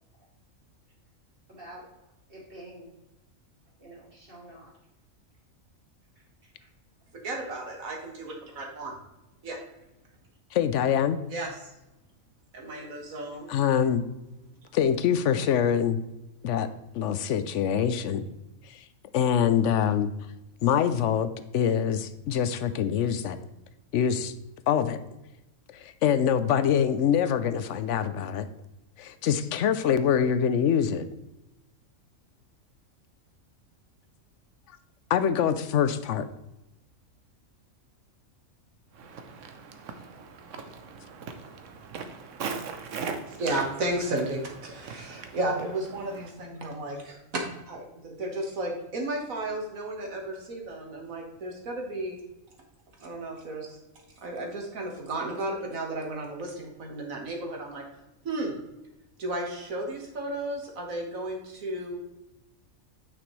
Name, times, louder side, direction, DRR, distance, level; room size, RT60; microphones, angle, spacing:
voice 1, 1.5-1.9 2.3-2.9 3.8-4.7 6.4-6.7, right 1 dB, 45° right, -5 dB, 2.8 m, -47 dB
voice 2, 7.1-8.9 9.4-9.6 11.3-11.7 12.5-13.5 43.3-52.2 53.0-53.7 54.2-57.8 58.2-58.6 59.2-62.0, right 1 dB, 90° right, 1 dB, 2.0 m, -33 dB
voice 3, 10.5-11.2 13.5-14.0 14.7-16.0 16.4-16.7 16.9-18.2 19.1-20.1 20.6-23.4 23.9-24.3 24.7-25.0 25.8-28.5 29.0-31.1 35.1-36.3, left 8 dB, 70° left, 12 dB, 0.9 m, -24 dB
Walk footsteps, 38.9-46.3, right 5 dB, 70° right, 1.1 m, -40 dB
9.1 x 6.0 x 3.2 m, 0.95 s
omnidirectional pair, 1.4 m